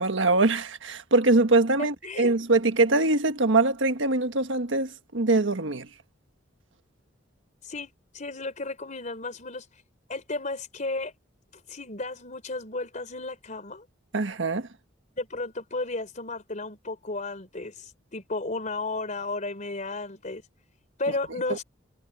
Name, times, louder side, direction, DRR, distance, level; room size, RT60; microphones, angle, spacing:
voice 1, 0.0-5.9 14.1-14.7 21.5-21.6, right 2 dB, 80° right, 1.5 m, -23 dB
voice 2, 1.8-2.3 7.6-9.7 10.1-11.1 11.7-13.9 15.2-20.4 21.0-21.6, left 2 dB, 40° left, 4.0 m, -33 dB
head